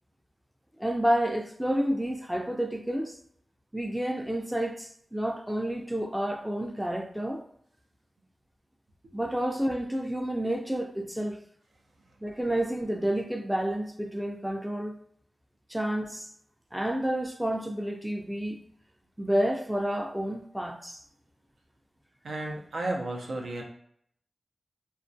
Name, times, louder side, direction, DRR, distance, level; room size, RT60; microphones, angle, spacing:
voice 1, 0.8-3.2 3.7-7.4 9.1-11.4 12.2-15.0 15.7-16.3 16.7-18.6 19.2-21.0, right 1 dB, 5° right, 0.4 m, -30 dB
voice 2, 22.2-23.6, right 2 dB, 80° right, 0.5 m, -33 dB
2.3 x 2.1 x 2.6 m
cardioid pair, 55°, 0 cm